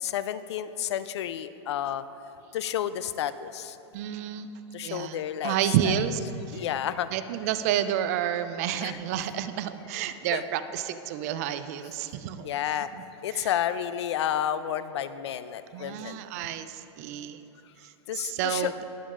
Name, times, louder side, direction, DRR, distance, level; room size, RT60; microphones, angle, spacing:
voice 1, 0.0-2.1 2.5-3.8 4.7-5.6 5.8-5.9 6.5-7.1 8.8-9.0 10.3-10.5 12.4-12.9 13.2-16.2 18.1-18.7, left 10 dB, 75° left, 14 dB, 0.4 m, -31 dB
voice 2, 3.9-4.5 4.8-6.2 6.5-6.6 7.1-12.5 12.9-13.0 13.3-13.5 15.7-17.4 17.8-18.8, right 10 dB, 35° right, 11 dB, 0.3 m, -30 dB
20.0 x 7.2 x 2.5 m, 3.0 s
supercardioid pair, 170°, 14 cm